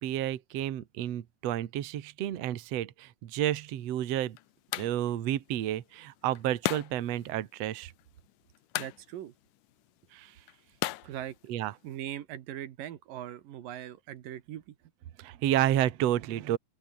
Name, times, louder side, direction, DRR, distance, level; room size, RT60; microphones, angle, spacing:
voice 1, 0.0-4.4 4.8-7.9 10.1-10.3 11.5-11.7 15.2-16.6, right 12 dB, 55° right, 2.2 m, -30 dB
sound 1, 3.5-12.0, left 16 dB, 80° left, 2.3 m, -40 dB
voice 2, 8.8-9.3 11.1-11.4 11.8-14.8, right 11 dB, 80° right, 3.2 m, -40 dB
open air
omnidirectional pair, 3.9 m